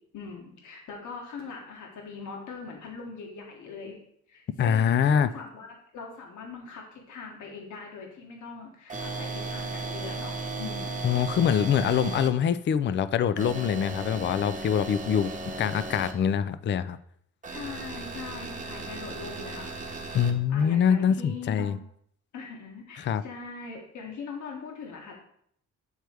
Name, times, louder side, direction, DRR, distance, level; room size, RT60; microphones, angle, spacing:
voice 1, 0.1-4.0 4.3-5.7 5.9-11.0 17.5-20.0 20.5-21.8 22.3-25.2, left 5 dB, 75° left, 0 dB, 1.5 m, -41 dB
voice 2, 4.6-5.3 11.0-15.3 15.6-17.0 20.1-21.8 23.0-23.2, left 8 dB, 40° left, 14 dB, 0.4 m, -24 dB
sound 1, 8.9-12.3 13.4-16.1 17.4-20.3, right 3 dB, 25° right, 1.0 m, -36 dB
8.0 x 3.3 x 4.5 m, 0.67 s
cardioid pair, 90°, 30 cm